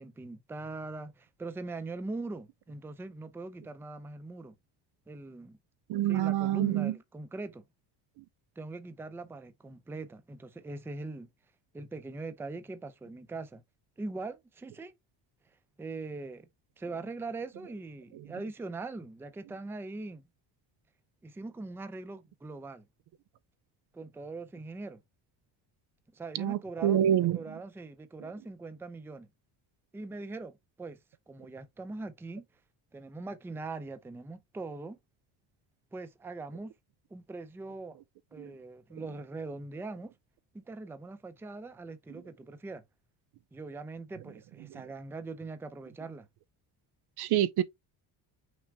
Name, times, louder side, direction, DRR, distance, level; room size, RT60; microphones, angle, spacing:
voice 1, 0.0-4.5 5.1-5.6 6.1-7.6 8.6-11.3 11.7-13.6 14.0-15.0 15.8-16.5 16.8-20.3 21.2-22.9 23.9-25.0 26.1-27.0 27.3-29.3 29.9-31.0 31.3-32.4 32.9-35.0 35.9-36.7 37.1-38.0 38.3-40.1 40.5-42.8 43.5-46.3, right 3 dB, 5° right, 0.4 m, -41 dB
voice 2, 5.9-6.9 26.3-27.4 38.4-38.5 44.7-44.8 47.2-47.6, right 11 dB, 55° right, 0.5 m, -27 dB
6.0 x 2.1 x 4.0 m
cardioid pair, 120°, 47 cm